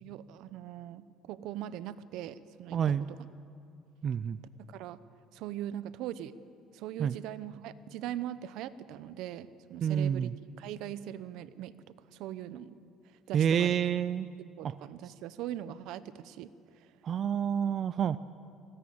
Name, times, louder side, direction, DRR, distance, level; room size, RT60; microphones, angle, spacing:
voice 1, 0.0-3.3 4.7-5.0 5.3-6.3 6.7-11.8 12.1-12.8 13.3-13.8 14.6-16.9, right 12 dB, 75° right, 15 dB, 0.7 m, -41 dB
voice 2, 2.7-3.0 4.0-4.4 7.0-7.2 9.8-10.3 13.3-14.3 14.6-14.7 17.0-18.2, right 8 dB, 45° right, 15 dB, 0.4 m, -28 dB
19.5 x 16.0 x 8.6 m, 2.5 s
cardioid pair, 105°, 0 cm